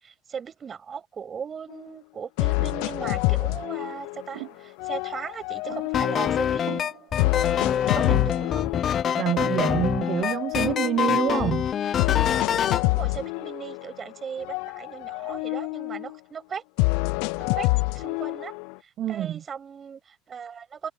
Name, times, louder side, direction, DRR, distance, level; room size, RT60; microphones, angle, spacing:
voice 1, 0.0-6.7 7.8-8.7 12.8-16.6 17.4-18.5 18.8-20.9, right 7 dB, 30° right, 7.7 m, -38 dB
sound 1, 1.7-1.8 2.4-4.4 4.8-6.6 7.2-9.2 9.6-11.4 12.0-14.1 14.4-16.2 16.8-18.8, left 30 dB, 70° left, 0.4 m, -27 dB
sound 2, 4.3-4.6 5.6-6.1 6.7-7.2 8.0-8.5 9.4-9.9, right 28 dB, 75° right, 3.7 m, -40 dB
sound 3, 5.9-12.9, left 9 dB, 40° left, 0.7 m, -25 dB
voice 2, 9.2-11.7 19.0-19.4, right 12 dB, 50° right, 0.7 m, -27 dB
hypercardioid pair, 90°, 0 cm